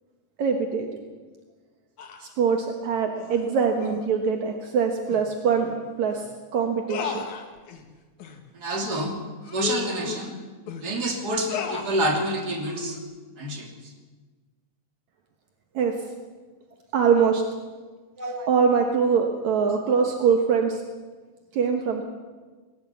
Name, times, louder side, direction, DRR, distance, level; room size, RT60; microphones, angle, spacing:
voice 1, 0.4-0.9 2.4-6.2 6.5-7.3 15.8-15.9 16.9-17.4 18.5-20.8 21.5-22.0, right 6 dB, 70° right, 3 dB, 2.7 m, -23 dB
sound 1, 2.0-2.3 3.2-3.4 3.8-4.1 5.1-5.2 5.6-5.8 6.1-6.2 6.9-7.8 8.2-8.4 8.8-8.9 9.4-10.9 11.5-12.0 12.6-13.0, left 7 dB, 75° left, 3.1 m, -34 dB
voice 2, 8.5-9.2 9.5-10.3 10.8-13.0 13.4-13.7 18.2-18.5, right 1 dB, 30° right, 1 dB, 3.4 m, -27 dB
21.0 x 13.0 x 9.4 m, 1.4 s
omnidirectional pair, 3.5 m